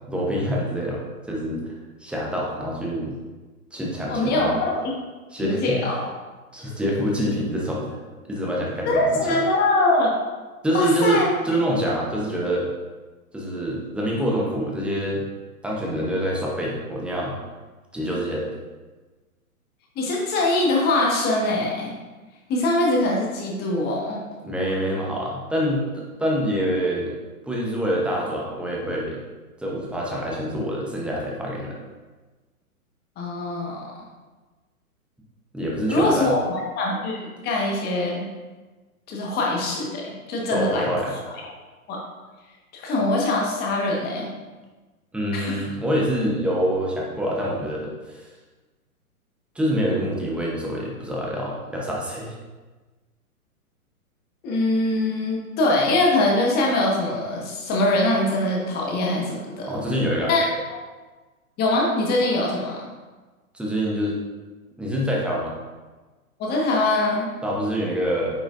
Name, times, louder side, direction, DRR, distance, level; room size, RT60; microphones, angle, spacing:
voice 1, 0.1-1.7 2.0-3.1 3.7-4.6 5.3-5.6 6.5-8.0 8.3-9.2 10.6-12.7 13.3-15.2 15.6-17.3 17.9-18.5 24.4-27.1 27.4-29.2 29.6-31.8 35.5-36.4 40.5-41.1 45.1-48.3 49.5-52.3 59.6-60.3 63.5-64.2 64.8-65.5 67.4-68.4, equal, ahead, -3 dB, 0.9 m, -26 dB
voice 2, 4.1-4.9 5.4-6.1 8.9-10.1 10.7-11.2 19.9-21.9 22.5-24.2 33.2-33.8 35.9-38.3 39.1-40.9 41.9-42.0 42.7-44.3 45.3-45.6 54.4-59.7 60.3-60.8 61.6-62.9 66.4-67.3, left 2 dB, 20° left, -2 dB, 1.4 m, -23 dB
9.2 x 4.8 x 2.6 m, 1.3 s
figure-of-eight pair, 120°, 44 cm